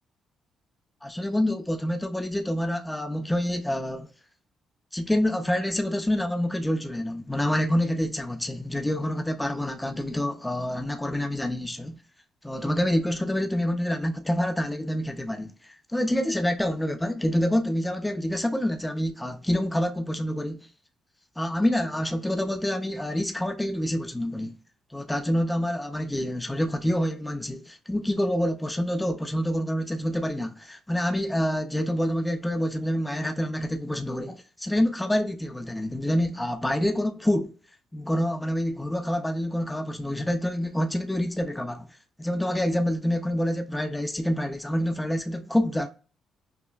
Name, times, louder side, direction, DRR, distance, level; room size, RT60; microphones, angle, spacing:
voice 1, 1.0-4.1 4.9-12.0 12.4-20.7 21.4-24.5 24.9-37.5 37.9-41.9 42.2-45.9, left 1 dB, 10° left, 0.5 m, -27 dB
5.7 x 2.0 x 2.2 m
cardioid pair, 90°, 0 cm